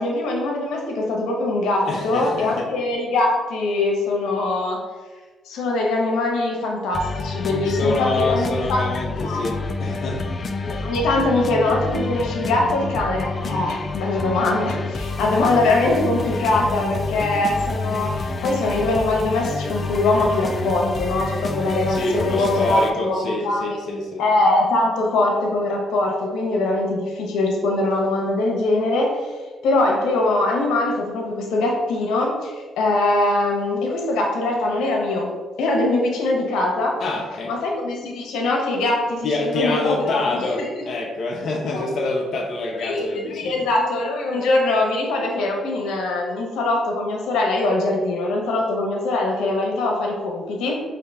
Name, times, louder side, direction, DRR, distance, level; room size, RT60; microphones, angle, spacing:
voice 1, 0.0-4.8 5.5-8.8 9.2-9.4 10.6-23.8 24.2-29.1 29.6-35.3 35.6-37.0 37.5-40.7 41.7-41.9 42.8-50.8, left 2 dB, 85° left, 0 dB, 1.0 m, -22 dB
voice 2, 1.9-2.7 7.6-10.2 21.9-24.2 37.0-37.5 39.2-43.6, left 2 dB, 60° left, 0 dB, 0.7 m, -26 dB
sound 1, 6.9-22.9, left 3 dB, 40° left, 0.4 m, -28 dB
4.9 x 2.7 x 3.4 m, 1.4 s
cardioid pair, 90°, 0 cm